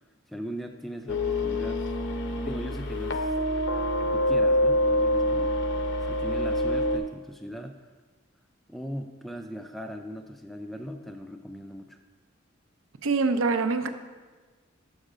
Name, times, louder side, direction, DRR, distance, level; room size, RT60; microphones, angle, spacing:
voice 1, 0.3-1.8 2.4-3.3 4.0-5.5 6.1-7.9 8.7-12.0, equal, ahead, 6 dB, 0.3 m, -39 dB
sound 1, 1.1-7.0, left 1 dB, 60° left, 0.6 m, -26 dB
voice 2, 13.0-13.9, right 4 dB, 85° right, 9 dB, 0.5 m, -24 dB
6.4 x 5.4 x 4.9 m, 1.3 s
head